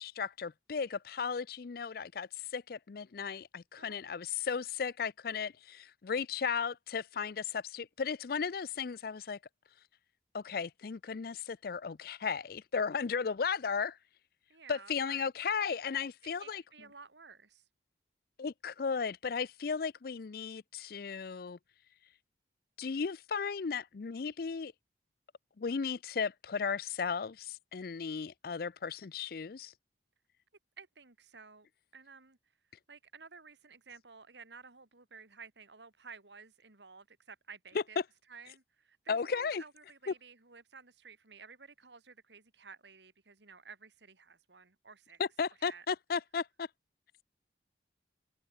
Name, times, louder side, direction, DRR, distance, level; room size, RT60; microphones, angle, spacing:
voice 1, 0.0-9.4 10.3-14.0 14.7-16.6 18.4-21.6 22.8-24.7 25.6-29.7 39.1-39.6 40.1-40.2 45.2-46.7, left 6 dB, 55° left, 0.5 m, -35 dB
voice 2, 14.5-15.3 16.2-17.7 30.8-32.4 32.9-38.0 38.3-45.2 45.6-45.9, right 5 dB, 75° right, 2.6 m, -54 dB
head